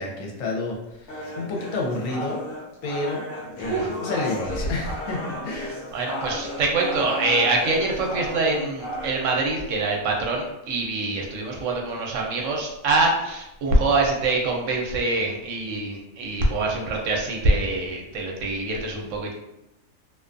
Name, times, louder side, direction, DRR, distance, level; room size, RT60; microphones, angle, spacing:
voice 1, 0.0-2.4 2.8-3.2 3.6-5.8, left 2 dB, 75° left, -1 dB, 1.0 m, -30 dB
sound 1, 1.1-9.1, left 1 dB, 55° left, 0.8 m, -34 dB
voice 2, 5.9-19.3, right 2 dB, 75° right, 0 dB, 0.9 m, -24 dB
2.4 x 2.2 x 2.4 m, 0.91 s
omnidirectional pair, 1.4 m